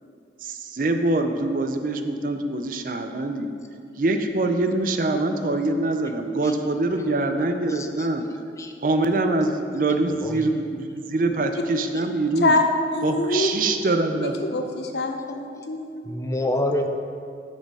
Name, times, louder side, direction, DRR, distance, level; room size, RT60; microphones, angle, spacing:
voice 1, 0.4-3.5 4.0-8.2 8.8-12.5 13.0-14.6, right 2 dB, 50° right, 7 dB, 0.5 m, -24 dB
voice 2, 7.7-8.1 8.6-8.7 10.2-10.5 16.1-16.9, left 1 dB, 15° left, 5 dB, 0.4 m, -27 dB
voice 3, 12.9-13.5 14.5-15.9, left 3 dB, 75° left, 5 dB, 0.7 m, -24 dB
6.7 x 6.4 x 4.8 m, 2.4 s
head